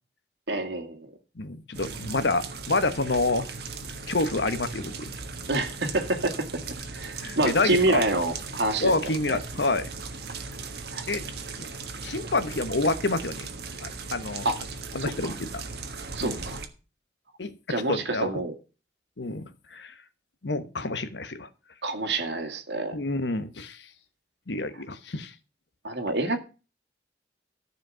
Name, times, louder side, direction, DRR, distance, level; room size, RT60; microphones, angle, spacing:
voice 1, 0.5-1.1 5.5-6.5 6.9-8.9 9.3-9.4 10.9-11.1 14.4-14.6 15.0-15.3 16.1-16.6 17.7-18.5 21.8-23.0 25.8-26.4, right 2 dB, 85° right, 2.1 m, -27 dB
voice 2, 1.4-3.5 4.1-5.1 7.2-8.0 8.8-9.9 11.1-11.2 11.6-11.7 12.0-13.5 13.8-14.5 14.9-15.6 16.2-16.4 17.4-18.3 19.2-19.4 19.7-19.9 20.4-21.5 22.9-23.8 24.5-25.3, left 2 dB, 85° left, 1.1 m, -28 dB
sound 1, 1.7-16.7, right 4 dB, 65° right, 1.5 m, -38 dB
14.0 x 5.1 x 6.2 m
head